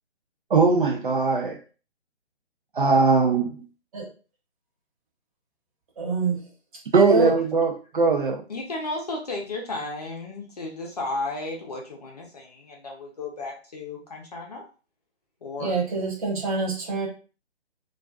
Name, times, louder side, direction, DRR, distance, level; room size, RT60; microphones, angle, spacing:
voice 1, 0.5-1.6 2.7-3.6 6.9-8.4, right 4 dB, 50° right, 0.4 m, -20 dB
voice 2, 6.0-6.4 6.9-7.3 15.6-17.1, right 3 dB, 30° right, 1.0 m, -25 dB
voice 3, 8.5-14.6 15.4-15.7, left 2 dB, 35° left, 0.6 m, -34 dB
2.3 x 2.3 x 2.3 m
hypercardioid pair, 155°, 34 cm